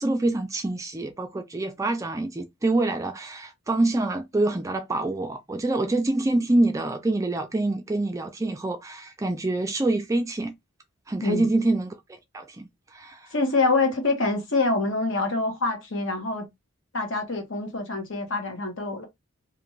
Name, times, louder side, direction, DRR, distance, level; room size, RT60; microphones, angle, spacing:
voice 1, 0.0-10.5 11.1-13.3, right 2 dB, 15° right, 0.3 m, -26 dB
voice 2, 13.3-16.5 16.9-19.1, left 3 dB, 60° left, 1.1 m, -25 dB
2.5 x 2.5 x 3.1 m
head